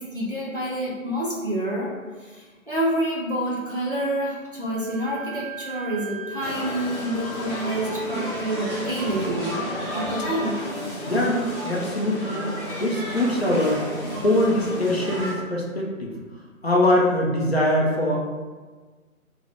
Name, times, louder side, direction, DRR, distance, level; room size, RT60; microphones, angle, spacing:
voice 1, 0.0-1.9 2.2-9.6 9.9-10.6, right 1 dB, 40° right, -6 dB, 0.4 m, -28 dB
Wind instrument woodwind instrument, 4.6-12.0, right 5 dB, 65° right, 1.0 m, -43 dB
sound 1, 6.4-15.3, equal, 20° left, 0.8 m, -32 dB
voice 2, 11.1-12.5 12.8-16.2 16.6-18.2, left 1 dB, 50° left, -2 dB, 0.4 m, -23 dB
2.6 x 2.0 x 3.1 m, 1.4 s
figure-of-eight pair, 150°, 43 cm